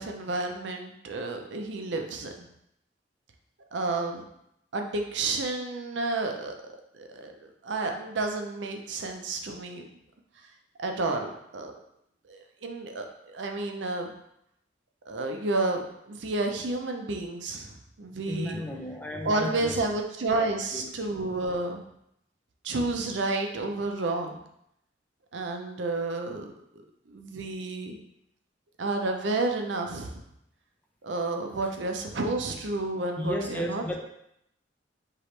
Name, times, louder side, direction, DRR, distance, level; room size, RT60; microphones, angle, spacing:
voice 1, 0.0-2.5 3.7-4.2 4.7-6.5 6.9-9.8 10.8-11.8 12.3-14.1 15.1-18.6 19.2-21.8 22.6-24.4 25.3-26.5 27.1-28.0 28.8-30.2 31.0-33.8, right 2 dB, 80° right, 3 dB, 0.6 m, -31 dB
voice 2, 18.3-19.8 20.4-20.9 31.6-31.7 33.2-34.0, left 1 dB, 10° left, 1 dB, 0.5 m, -34 dB
4.7 x 2.9 x 3.2 m, 0.76 s
head